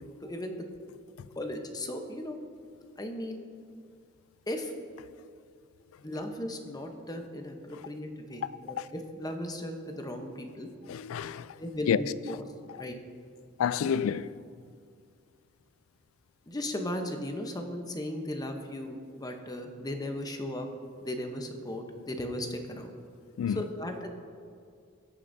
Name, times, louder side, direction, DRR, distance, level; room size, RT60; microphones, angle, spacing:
voice 1, 0.2-0.6 1.4-2.4 3.0-3.4 4.5-4.7 6.0-10.7 11.6-12.4 12.8-13.0 16.5-20.7 21.0-22.9 23.5-24.1, left 1 dB, 20° left, 0.8 m, -36 dB
voice 2, 10.9-11.5 11.9-12.0 13.6-14.3 23.4-23.6, left 8 dB, 80° left, 0.3 m, -28 dB
19.5 x 6.7 x 2.7 m
head